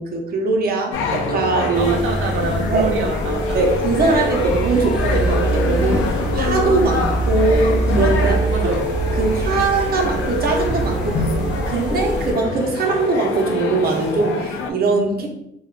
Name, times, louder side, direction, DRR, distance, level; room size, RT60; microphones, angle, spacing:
voice 1, 0.0-1.9 2.7-2.9 3.5-6.1 6.3-8.4 8.6-8.7 9.1-15.3, right 3 dB, 50° right, 1 dB, 0.7 m, -21 dB
sound 1, 0.9-14.7, left 4 dB, 85° left, 0.4 m, -25 dB
sound 2, 1.2-4.1 6.6-8.8 11.9-14.2, left 1 dB, 60° left, 0.9 m, -34 dB
sound 3, 1.7-12.3, right 2 dB, 5° right, 0.8 m, -24 dB
voice 2, 1.8-3.6 8.2-8.9 15.2-15.3, right 4 dB, 80° right, 0 dB, 0.4 m, -26 dB
3.5 x 2.3 x 2.4 m, 0.76 s
cardioid pair, 90°, 20 cm